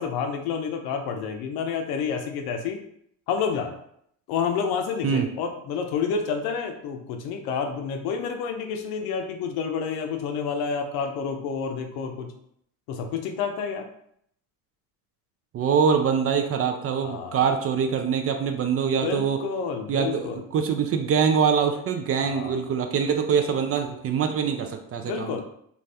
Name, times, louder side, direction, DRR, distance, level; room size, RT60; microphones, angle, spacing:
voice 1, 0.0-2.8 3.3-3.8 4.3-12.3 12.9-13.9 17.0-17.4 19.0-20.4 22.2-22.6 25.0-25.4, left 6 dB, 70° left, 4 dB, 0.6 m, -29 dB
voice 2, 15.5-19.4 19.9-25.4, right 6 dB, 35° right, 6 dB, 0.4 m, -24 dB
2.5 x 2.3 x 3.3 m, 0.70 s
hypercardioid pair, 65°, 39 cm